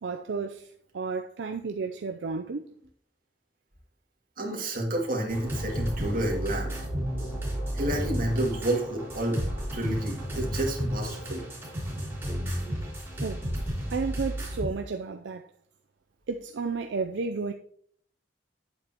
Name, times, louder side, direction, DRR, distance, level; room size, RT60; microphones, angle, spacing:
voice 1, 0.0-2.6 12.7-12.8 13.2-13.4 13.9-15.4 16.3-17.5, right 4 dB, 75° right, 0.5 m, -32 dB
voice 2, 4.4-6.7 7.7-9.4 9.7-11.4, right 1 dB, 50° right, 2.3 m, -29 dB
sound 1, 5.3-14.7, equal, 10° right, 3.6 m, -32 dB
9.1 x 8.1 x 2.9 m
head